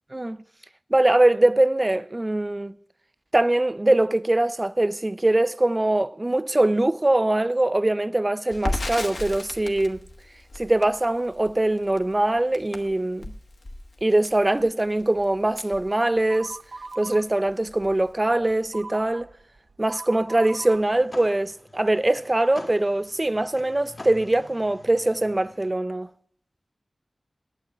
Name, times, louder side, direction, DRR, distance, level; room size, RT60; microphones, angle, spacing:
voice 1, 0.1-0.4 0.9-2.7 3.3-10.0 10.6-13.4 14.0-16.6 17.0-19.3 19.8-26.1, right 1 dB, 30° right, 0.5 m, -22 dB
Crackle, 8.5-16.6 16.9-17.0 17.3-18.1, left 2 dB, 85° left, 1.1 m, -36 dB
sound 1, 16.3-17.2 17.8-20.8, right 3 dB, 80° right, 0.6 m, -40 dB
sound 2, 20.2-25.7, left 2 dB, 60° left, 1.8 m, -46 dB
9.0 x 8.0 x 8.6 m
cardioid pair, 40°, 0 cm